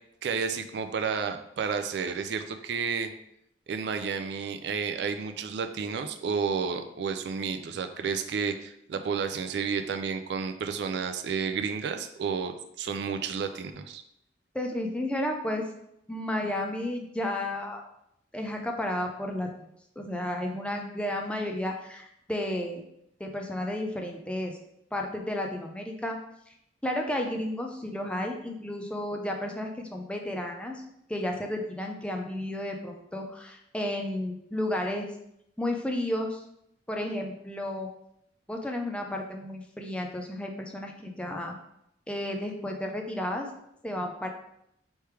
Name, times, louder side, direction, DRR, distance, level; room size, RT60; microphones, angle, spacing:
voice 1, 0.2-3.1 3.7-14.0, right 6 dB, 65° right, 7 dB, 0.3 m, -31 dB
voice 2, 14.5-15.7 16.1-17.8 18.3-19.5 20.0-22.8 23.2-24.5 24.9-26.2 26.8-30.8 31.1-35.1 35.6-36.4 36.9-37.9 38.5-41.5 42.1-43.5 43.8-44.3, left 1 dB, 5° left, 2 dB, 0.4 m, -32 dB
3.3 x 3.2 x 4.5 m, 0.78 s
head